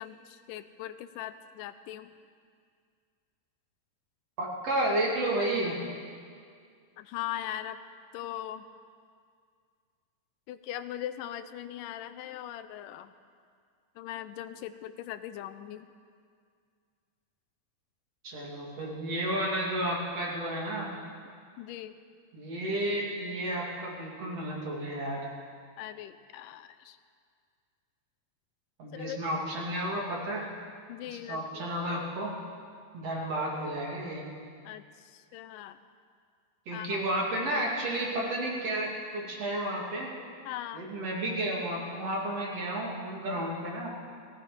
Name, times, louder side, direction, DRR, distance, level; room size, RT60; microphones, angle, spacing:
voice 1, 0.0-2.1 7.0-7.8 8.1-8.7 10.5-13.1 14.0-15.9 21.6-21.9 25.8-27.0 28.9-29.2 30.9-31.6 34.7-34.8 35.1-35.8 36.7-37.0 40.5-40.8, left 12 dB, 80° left, 11 dB, 2.1 m, -40 dB
voice 2, 4.4-5.8 18.2-20.9 22.3-25.2 28.8-30.5 31.1-32.3 32.9-34.2 36.7-40.1 40.7-43.9, right 1 dB, 50° right, -3 dB, 3.3 m, -32 dB
18.0 x 15.5 x 5.0 m, 2.1 s
omnidirectional pair, 4.0 m